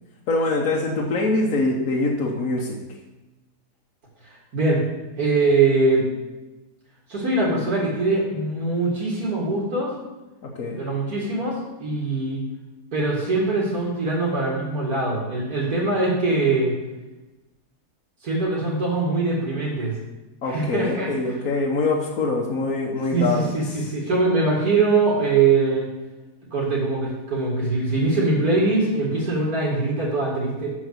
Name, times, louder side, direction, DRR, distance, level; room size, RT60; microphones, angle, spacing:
voice 1, 0.3-2.8 10.4-10.8 20.4-23.8, left 3 dB, 60° left, -1 dB, 1.4 m, -24 dB
voice 2, 4.2-4.8 5.2-6.1 7.1-9.9 10.8-12.4 12.9-16.7 18.2-19.9 20.5-21.1 23.1-25.9 26.5-30.7, right 3 dB, 70° right, -7 dB, 2.6 m, -22 dB
7.3 x 5.9 x 6.6 m, 1.1 s
omnidirectional pair, 1.7 m